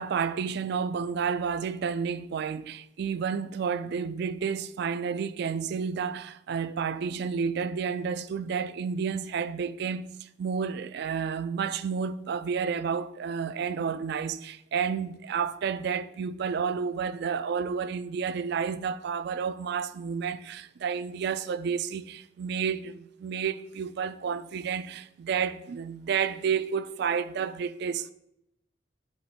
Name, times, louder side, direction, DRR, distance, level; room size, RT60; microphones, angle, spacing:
voice 1, 0.0-28.1, right 6 dB, 60° right, 0.3 m, -31 dB
7.1 x 3.0 x 5.0 m
head